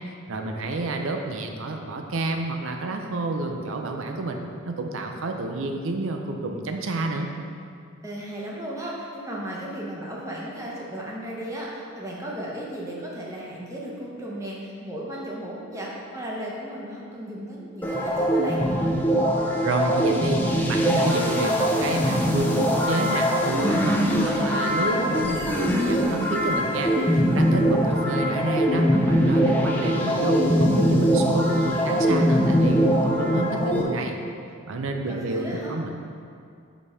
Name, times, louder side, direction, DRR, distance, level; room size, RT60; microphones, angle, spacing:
voice 1, 0.2-4.4 4.6-7.3 19.6-34.2 34.7-35.9, right 2 dB, 70° right, 3 dB, 0.5 m, -29 dB
voice 2, 8.0-18.6 35.1-35.8, right 1 dB, 15° right, -4 dB, 0.8 m, -35 dB
sound 1, 17.8-33.8, equal, 10° left, 0.4 m, -22 dB
5.1 x 4.2 x 4.9 m, 2.3 s
head